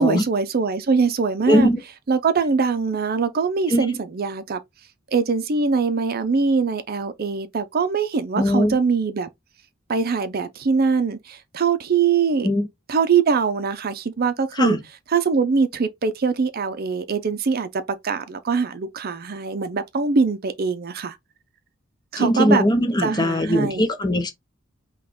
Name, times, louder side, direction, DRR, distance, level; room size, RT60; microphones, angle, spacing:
voice 1, 0.0-1.7 2.1-4.6 5.1-9.3 9.9-12.5 12.9-14.8 15.1-21.2 22.1-22.6 23.0-23.8, right 5 dB, 45° right, 0.5 m, -22 dB
voice 2, 1.5-1.8 3.7-3.8 8.4-8.8 12.4-12.7 14.6-14.8 22.2-24.3, left 1 dB, 20° left, 0.8 m, -20 dB
5.6 x 2.3 x 3.5 m
head